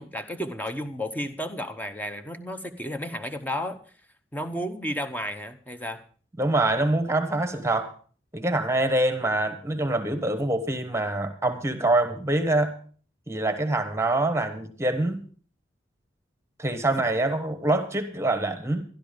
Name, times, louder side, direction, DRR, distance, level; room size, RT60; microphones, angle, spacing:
voice 1, 0.0-3.8 4.3-6.0, equal, 10° left, 7 dB, 0.8 m, -32 dB
voice 2, 6.4-7.9 8.3-12.7 13.3-15.2 16.6-18.8, right 2 dB, 15° right, 9 dB, 1.1 m, -25 dB
12.5 x 12.0 x 5.1 m, 0.42 s
head